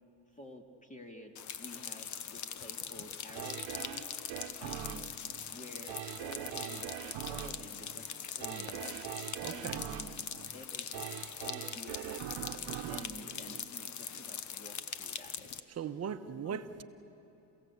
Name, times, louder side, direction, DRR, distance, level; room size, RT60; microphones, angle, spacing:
voice 1, 0.3-4.3 4.6-5.1 5.3-9.0 9.5-10.1 10.5-11.1 11.4-12.3 12.9-15.5 16.4-16.8, left 1 dB, 15° left, 5 dB, 2.5 m, -51 dB
sound 1, 1.4-15.6, left 8 dB, 40° left, 1.1 m, -42 dB
sound 2, 3.3-14.3 14.7-14.8, right 13 dB, 70° right, 1.1 m, -43 dB
voice 2, 9.4-9.8 15.8-16.8, right 8 dB, 35° right, 9 dB, 1.1 m, -38 dB
28.5 x 16.0 x 8.4 m, 2.9 s
supercardioid pair, 95°, 44 cm